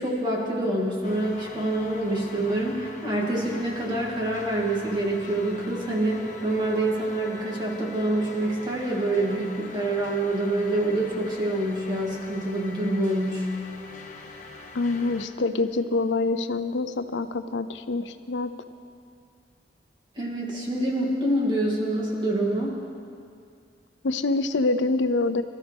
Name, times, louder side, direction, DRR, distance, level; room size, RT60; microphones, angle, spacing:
voice 1, 0.0-13.5 20.2-22.7, right 1 dB, 25° right, -3 dB, 2.7 m, -26 dB
sound 1, 1.0-15.3, left 3 dB, 45° left, 1.2 m, -43 dB
voice 2, 14.7-18.5 24.0-25.4, left 3 dB, 85° left, 10 dB, 0.6 m, -25 dB
24.5 x 13.5 x 3.6 m, 2.3 s
head